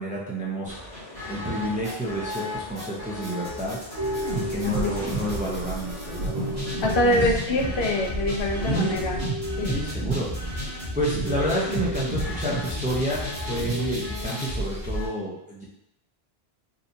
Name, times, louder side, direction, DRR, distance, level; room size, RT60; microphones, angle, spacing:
voice 1, 0.0-3.8 4.3-6.4 7.0-7.3 8.7-9.0 9.6-15.6, right 1 dB, 10° right, -5 dB, 0.4 m, -30 dB
sound 1, 0.7-15.1, left 1 dB, 40° left, 1.7 m, -34 dB
sound 2, 4.0-14.1, right 2 dB, 85° right, 0.9 m, -32 dB
sound 3, 4.2-9.3, right 1 dB, 65° right, 1.4 m, -38 dB
voice 2, 6.8-9.2 9.6-9.8, left 1 dB, 75° left, 1 dB, 0.8 m, -24 dB
4.0 x 2.7 x 2.6 m, 0.85 s
omnidirectional pair, 1.1 m